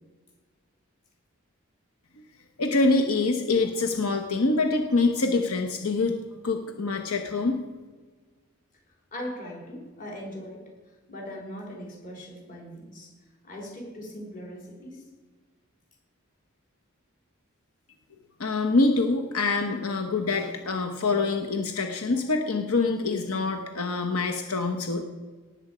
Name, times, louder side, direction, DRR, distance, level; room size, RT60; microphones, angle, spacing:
voice 1, 2.6-6.2 6.4-7.6 18.4-25.0, left 3 dB, 85° left, 5 dB, 1.1 m, -25 dB
voice 2, 9.1-10.7 11.1-13.1 13.4-15.0, equal, 40° left, -1 dB, 3.8 m, -39 dB
18.0 x 8.1 x 5.0 m, 1.4 s
head